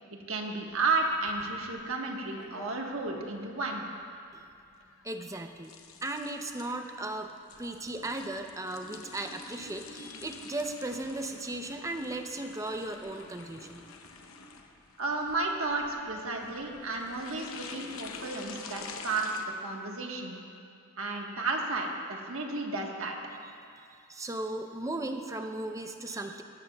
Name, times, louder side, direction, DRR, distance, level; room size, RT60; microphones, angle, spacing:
voice 1, 0.1-3.8 15.0-20.4 21.0-23.2, right 3 dB, 75° right, 0 dB, 1.4 m, -32 dB
sound 1, 0.7-19.4, left 4 dB, 80° left, 0.8 m, -48 dB
voice 2, 5.0-5.7 6.0-7.3 7.6-13.9 23.8-26.4, right 2 dB, 15° right, 5 dB, 0.6 m, -36 dB
17.5 x 13.5 x 2.3 m, 2.4 s
head